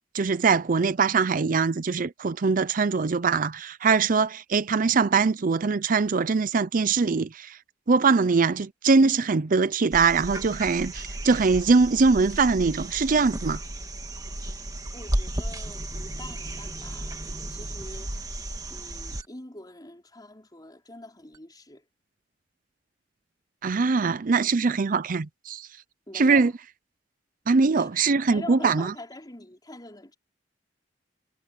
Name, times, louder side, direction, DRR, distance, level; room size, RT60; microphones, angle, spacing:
voice 1, 0.1-7.6 7.9-13.6 23.6-25.7 26.1-26.5 27.5-28.9, right 4 dB, 50° right, 0.5 m, -22 dB
sound 1, 9.9-19.2 21.3-21.4, right 1 dB, 20° right, 1.9 m, -34 dB
voice 2, 14.9-18.4 18.7-21.9 26.1-26.5 27.8-30.2, left 1 dB, 25° left, 4.8 m, -44 dB
head